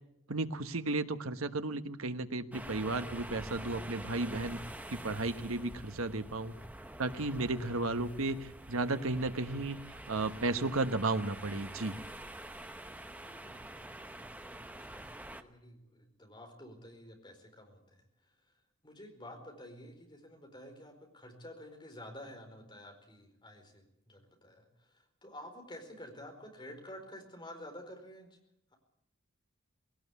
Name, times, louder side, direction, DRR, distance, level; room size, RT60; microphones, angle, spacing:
voice 1, 0.3-4.6 4.9-6.5 7.0-9.8 10.1-11.9, right 2 dB, 90° right, 9 dB, 1.2 m, -34 dB
sound 1, 2.5-15.4, right 1 dB, 10° right, 1.0 m, -47 dB
voice 2, 13.2-17.8 18.8-28.3, left 1 dB, 20° left, 3 dB, 4.6 m, -50 dB
20.0 x 18.5 x 8.3 m, 0.78 s
head